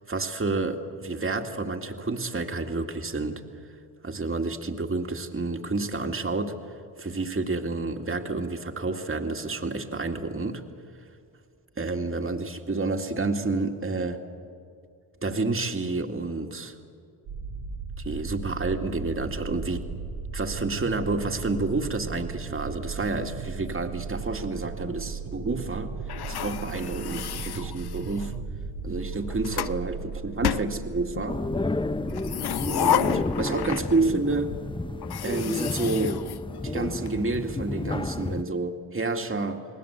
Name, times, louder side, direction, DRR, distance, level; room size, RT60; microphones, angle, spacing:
voice 1, 0.1-3.4 4.0-6.5 7.0-10.6 11.8-14.2 15.2-16.7 18.0-19.9 20.3-25.9 26.3-28.4 28.8-31.4 32.7-33.1 33.4-34.6 35.2-36.2 36.6-39.7, right 3 dB, 25° right, 4 dB, 2.3 m, -29 dB
sound 1, 17.3-35.0, right 5 dB, 80° right, 2.3 m, -37 dB
sound 2, 26.1-28.4 29.1-29.8 30.4-31.3 32.1-34.2 34.5-34.6 35.0-37.1, left 10 dB, 55° left, 0.8 m, -31 dB
sound 3, 31.3-38.4, left 2 dB, 10° left, 0.8 m, -31 dB
29.5 x 19.5 x 8.2 m, 2.3 s
supercardioid pair, 50°, 48 cm